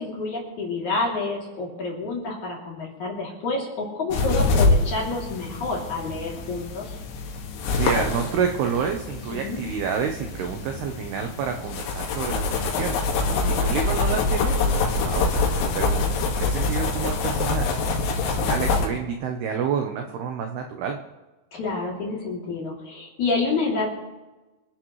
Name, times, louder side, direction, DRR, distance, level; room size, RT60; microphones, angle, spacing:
voice 1, 0.0-6.8 9.3-9.6 13.3-13.5 18.3-18.9 21.5-23.9, left 3 dB, 40° left, -3 dB, 3.8 m, -28 dB
sound 1, 4.1-18.9, left 3 dB, 85° left, 4.6 m, -25 dB
voice 2, 7.8-13.0 13.3-17.8 18.2-21.0, right 7 dB, 75° right, 4 dB, 2.4 m, -29 dB
26.5 x 12.0 x 3.2 m, 1.1 s
omnidirectional pair, 5.8 m